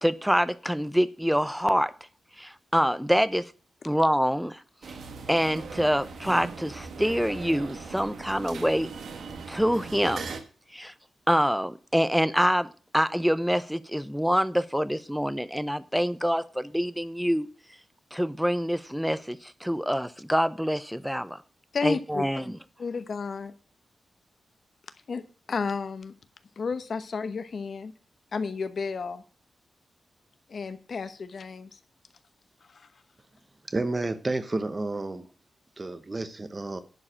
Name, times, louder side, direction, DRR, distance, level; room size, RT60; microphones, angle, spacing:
voice 1, 0.0-1.9 2.4-3.5 3.8-4.6 5.3-8.9 9.5-10.3 10.7-10.9 11.3-17.5 18.1-21.4 21.8-22.6, equal, ahead, 14 dB, 0.5 m, -26 dB
sound 1, 4.8-10.4, right 4 dB, 80° right, 1.4 m, -39 dB
voice 2, 21.7-22.3 22.8-23.5 25.1-25.2 25.5-26.1 26.6-27.9 28.3-29.2 30.5-31.8 32.7-32.9, left 5 dB, 50° left, 11 dB, 1.0 m, -32 dB
voice 3, 33.7-35.3 35.8-36.8, right 2 dB, 25° right, 11 dB, 0.9 m, -30 dB
11.0 x 4.8 x 7.4 m, 0.38 s
wide cardioid pair, 150°, 0 cm